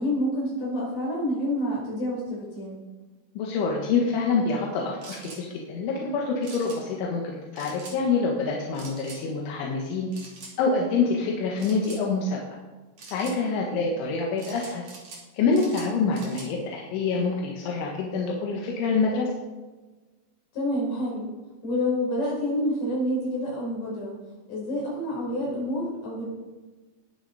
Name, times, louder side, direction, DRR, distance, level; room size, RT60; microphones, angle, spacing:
voice 1, 0.0-2.8 20.5-21.3 21.6-24.1 24.5-26.2, left 1 dB, 55° left, -4 dB, 7.2 m, -28 dB
voice 2, 3.4-10.1 10.6-12.4 13.1-14.8 15.3-19.3, left 4 dB, 85° left, -1 dB, 4.0 m, -26 dB
sound 1, 5.0-5.4 6.4-6.8 7.6-8.0 8.8-9.2 10.1-10.5 11.6-12.0 13.0-13.4 14.4-15.2 15.5-16.5, right 3 dB, 40° right, 3.2 m, -44 dB
20.5 x 9.7 x 4.2 m, 1.2 s
omnidirectional pair, 5.3 m